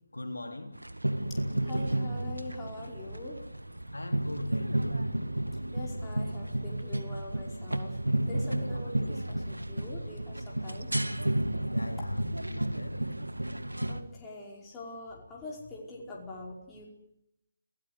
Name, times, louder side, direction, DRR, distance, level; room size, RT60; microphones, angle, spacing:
voice 1, 0.1-0.7 3.9-5.0 11.7-12.2 12.5-13.0, left 2 dB, 80° left, 6 dB, 3.5 m, -39 dB
sound 1, 0.7-14.0, right 1 dB, 90° right, 2.0 m, -32 dB
voice 2, 1.3-3.4 5.7-8.0 8.3-10.9 13.8-16.9, left 2 dB, 15° left, -3 dB, 5.2 m, -43 dB
28.0 x 17.5 x 9.8 m, 0.82 s
figure-of-eight pair, 145°, 0 cm